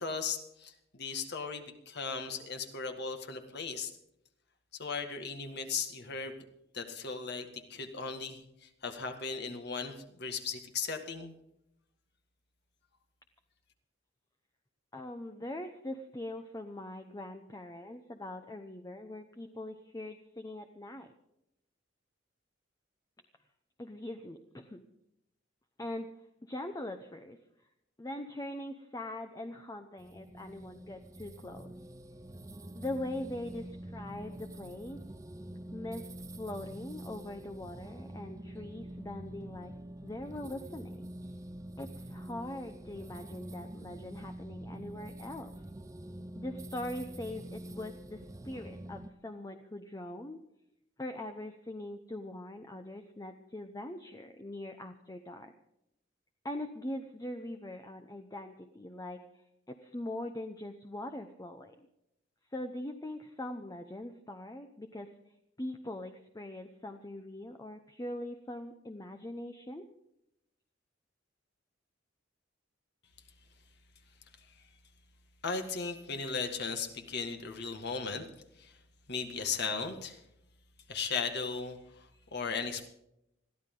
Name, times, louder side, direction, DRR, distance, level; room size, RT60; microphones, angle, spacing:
voice 1, 0.0-3.9 4.7-6.4 6.7-11.3 75.4-78.3 78.6-78.8 79.1-80.2 80.9-82.9, left 5 dB, 60° left, 5 dB, 1.9 m, -37 dB
voice 2, 14.9-21.1 23.8-24.8 25.8-26.1 26.4-27.4 28.0-31.7 32.8-35.0 35.7-36.1 36.4-39.7 40.0-41.1 41.8-45.5 46.4-50.4 51.0-55.5 56.4-61.9 62.5-65.1 65.6-69.9, left 1 dB, 20° left, 6 dB, 0.8 m, -42 dB
sound 1, 30.0-49.1, right 1 dB, 15° right, 0.6 m, -46 dB
22.0 x 14.5 x 3.8 m, 0.82 s
head